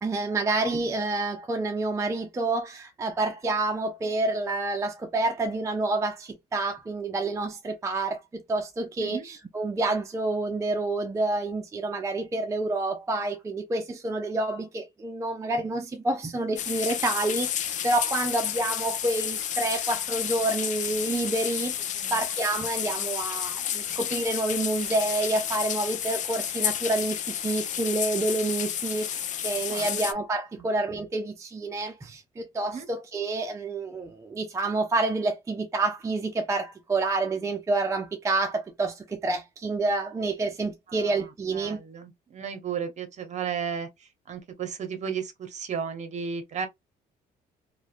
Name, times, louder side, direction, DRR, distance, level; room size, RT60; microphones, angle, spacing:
voice 1, 0.0-8.2 8.5-41.8, right 2 dB, 20° right, 0.4 m, -28 dB
sound 1, 16.6-30.1, left 10 dB, 45° left, 0.4 m, -31 dB
voice 2, 29.7-30.0 30.5-30.7 32.7-32.9 40.9-46.7, right 7 dB, 45° right, 0.8 m, -34 dB
2.9 x 2.1 x 2.4 m
cardioid pair, 110°, 17 cm